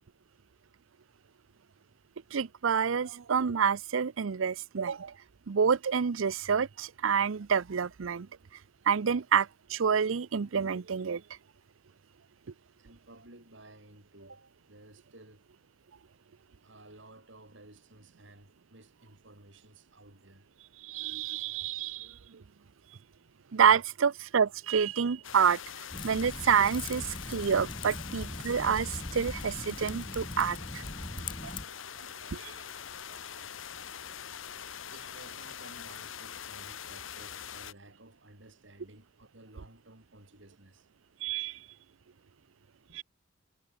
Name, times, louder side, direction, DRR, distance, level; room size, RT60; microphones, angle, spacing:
voice 1, 2.3-5.1 5.5-8.3 8.9-11.2 20.8-22.4 23.5-25.6 26.0-30.8 31.4-31.5 32.3-32.5 41.2-41.6 42.9-43.0, right 6 dB, 85° right, 0.6 m, -28 dB
voice 2, 12.8-15.4 16.6-20.5 22.1-22.5 23.2-23.3 34.5-40.9 42.9-43.0, right 2 dB, 70° right, 5.8 m, -55 dB
sound 1, 25.2-37.7, left 8 dB, 80° left, 1.2 m, -43 dB
Typing, 25.9-31.7, left 2 dB, 25° left, 1.7 m, -40 dB
head